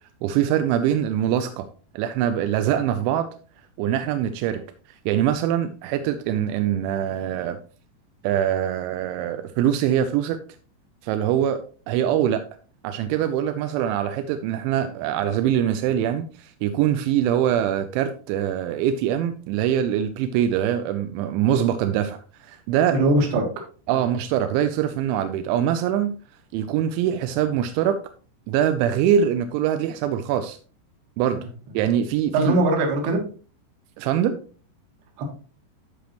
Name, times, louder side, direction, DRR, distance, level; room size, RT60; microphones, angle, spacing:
voice 1, 0.2-1.7 1.9-3.3 3.8-4.6 5.1-7.6 8.2-10.4 11.0-11.6 11.9-12.4 12.8-23.0 23.9-26.2 26.5-28.0 28.5-30.6 31.2-31.4 31.7-32.5 34.0-34.4, right 10 dB, 85° right, 2.9 m, -23 dB
voice 2, 22.9-23.5 31.3-31.5 32.3-33.2 35.2-35.3, right 1 dB, 65° right, 3.5 m, -21 dB
13.0 x 5.2 x 3.0 m
omnidirectional pair, 5.4 m